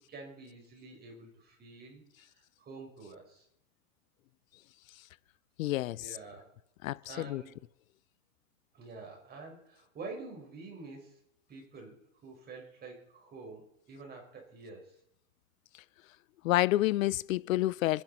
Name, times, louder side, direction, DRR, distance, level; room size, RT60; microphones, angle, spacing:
voice 1, 0.1-3.5 5.9-6.5 7.1-7.6 8.7-11.2 11.5-15.0, right 3 dB, 25° right, 5.3 m, -48 dB
voice 2, 5.6-6.1 6.8-7.0 7.3-7.4 16.4-18.0, left 16 dB, 75° left, 0.6 m, -28 dB
27.0 x 10.5 x 4.2 m
hypercardioid pair, 135°, 41 cm